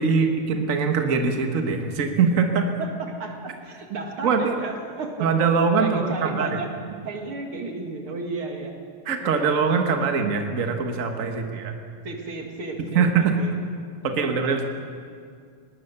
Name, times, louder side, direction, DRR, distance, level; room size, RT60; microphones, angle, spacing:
voice 1, 0.0-2.7 4.2-4.5 5.2-6.6 9.1-11.7 12.9-13.3 14.0-14.7, right 5 dB, 70° right, 5 dB, 0.7 m, -22 dB
voice 2, 2.8-5.4 5.8-8.8 9.2-10.1 11.3-11.5 12.0-13.6 14.0-14.6, right 3 dB, 45° right, 2 dB, 2.7 m, -34 dB
21.0 x 19.0 x 6.8 m, 2.2 s
omnidirectional pair, 3.7 m